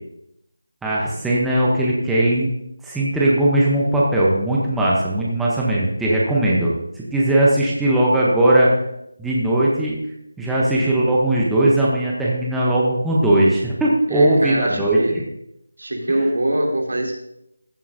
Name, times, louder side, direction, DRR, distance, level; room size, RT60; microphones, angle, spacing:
voice 1, 0.8-2.5 2.8-8.7 9.2-10.0 10.4-15.2, right 1 dB, ahead, -6 dB, 0.6 m, -18 dB
voice 2, 14.1-15.2 15.8-17.1, right 1 dB, 80° right, 1 dB, 2.7 m, -23 dB
14.5 x 7.4 x 2.6 m, 0.81 s
figure-of-eight pair, 180°, 0 cm